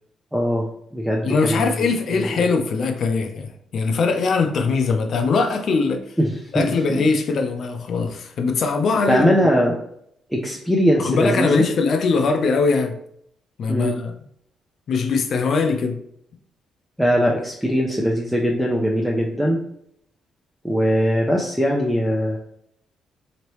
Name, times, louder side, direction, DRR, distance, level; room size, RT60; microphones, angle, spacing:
voice 1, 0.3-0.7 0.9-1.7 2.2-2.3 6.5-7.0 9.1-9.7 10.3-11.6 13.7-13.9 17.0-19.6 20.6-22.4, equal, ahead, -2 dB, 0.5 m, -20 dB
voice 2, 1.2-6.1 6.5-9.4 11.0-13.0 13.6-14.1 14.9-16.0, left 4 dB, 60° left, 5 dB, 0.5 m, -21 dB
3.1 x 2.9 x 3.0 m, 0.70 s
cardioid pair, 90°, 0 cm